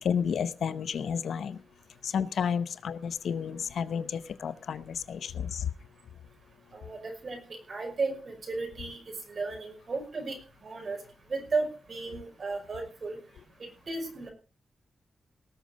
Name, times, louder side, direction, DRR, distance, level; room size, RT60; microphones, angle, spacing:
voice 1, 0.0-1.6 2.0-5.7, left 7 dB, 90° left, 14 dB, 0.8 m, -31 dB
voice 2, 6.7-9.0 9.3-10.4 10.6-11.0 11.3-13.2 13.9-14.3, right 3 dB, 45° right, 3 dB, 5.5 m, -34 dB
18.5 x 6.5 x 6.3 m, 0.38 s
wide cardioid pair, 140°, 0 cm